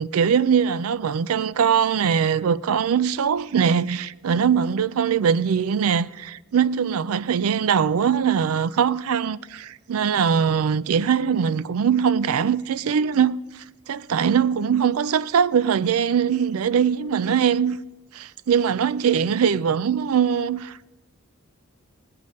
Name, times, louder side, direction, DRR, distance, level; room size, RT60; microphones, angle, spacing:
voice 1, 0.0-13.4 13.9-17.8 18.1-20.9, right 7 dB, 85° right, 0.4 m, -21 dB
19.5 x 7.4 x 5.2 m
head